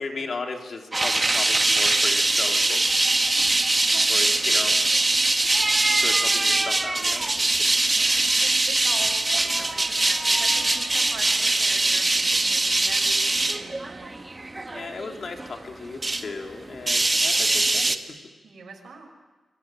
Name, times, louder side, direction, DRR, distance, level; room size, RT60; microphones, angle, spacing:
voice 1, 0.0-2.9 4.1-4.8 6.0-7.5 14.7-18.0, left 4 dB, 60° left, 3 dB, 3.4 m, -36 dB
sound 1, 0.9-16.3 16.6-18.0, right 2 dB, 25° right, 1.6 m, -22 dB
voice 2, 4.5-5.0 7.8-14.1 18.4-19.1, right 4 dB, 70° right, 0 dB, 5.9 m, -42 dB
27.0 x 23.0 x 9.1 m, 1.3 s
cardioid pair, 85°, 0 cm